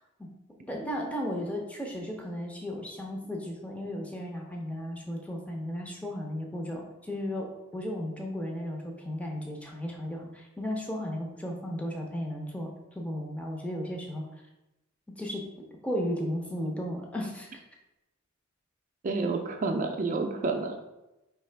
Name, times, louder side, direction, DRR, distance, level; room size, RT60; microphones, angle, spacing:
voice 1, 0.6-12.7 12.9-14.2 15.2-15.4 15.8-17.5, equal, 5° left, 0 dB, 0.6 m, -35 dB
voice 2, 19.0-20.8, right 3 dB, 40° right, 3 dB, 0.4 m, -29 dB
4.7 x 3.2 x 3.3 m, 0.96 s
head